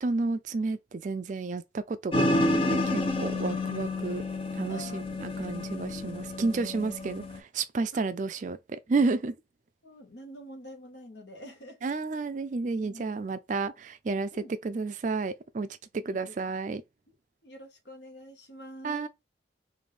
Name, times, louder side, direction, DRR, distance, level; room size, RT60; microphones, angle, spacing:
voice 1, 0.0-4.2 4.6-9.3 11.8-15.7 15.9-16.8 18.8-19.1, right 3 dB, 40° right, 0.3 m, -31 dB
sound 1, 2.1-7.4, left 2 dB, 30° left, 0.5 m, -29 dB
voice 2, 4.7-5.1 7.9-8.0 9.8-11.9 12.8-13.1 14.3-14.5 16.0-16.3 17.4-19.1, equal, 70° left, 1.4 m, -46 dB
3.8 x 2.6 x 3.3 m
head